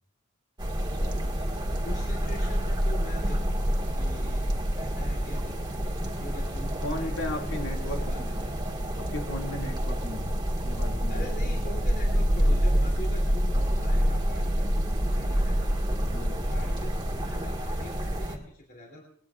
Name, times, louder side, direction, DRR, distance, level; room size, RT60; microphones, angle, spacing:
sound 1, 0.6-18.4, equal, 20° right, 1.7 m, -27 dB
voice 1, 1.7-3.6 4.0-4.4 4.7-8.5 11.1-14.7 14.9-15.7 16.3-19.0, equal, 50° left, -2 dB, 2.9 m, -43 dB
voice 2, 6.8-8.4 8.9-11.3 16.1-16.4, left 1 dB, 70° left, 1 dB, 2.3 m, -36 dB
21.5 x 18.5 x 2.4 m, 0.64 s
head